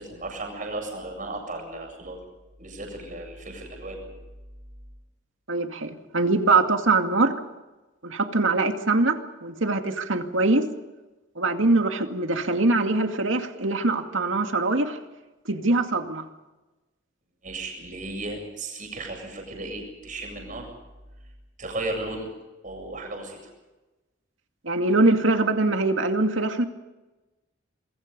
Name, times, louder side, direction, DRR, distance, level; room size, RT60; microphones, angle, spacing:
voice 1, 0.0-2.2 2.6-4.1 17.4-20.7 21.6-22.3 22.6-23.4, right 2 dB, 40° right, 2 dB, 7.8 m, -35 dB
voice 2, 5.5-7.4 8.0-10.6 11.4-15.0 15.5-16.2 24.6-26.6, right 3 dB, 80° right, 5 dB, 2.3 m, -23 dB
27.0 x 23.0 x 5.4 m, 1.1 s
head